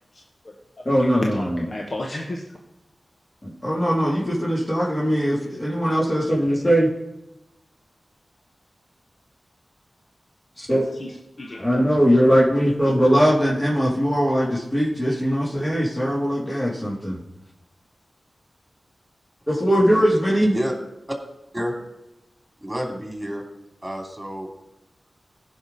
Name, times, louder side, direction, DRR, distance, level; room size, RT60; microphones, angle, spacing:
voice 1, 0.1-0.5 1.0-2.5 10.7-12.0, left 1 dB, 50° left, 0 dB, 1.2 m, -34 dB
voice 2, 0.8-1.3 3.4-6.9 10.6-10.9 11.6-17.2 19.5-20.5, equal, 25° left, -7 dB, 3.2 m, -20 dB
voice 3, 22.6-23.4 23.8-24.5, equal, 10° right, 1 dB, 2.9 m, -29 dB
15.5 x 5.9 x 4.2 m, 0.94 s
cardioid pair, 50°, 0 cm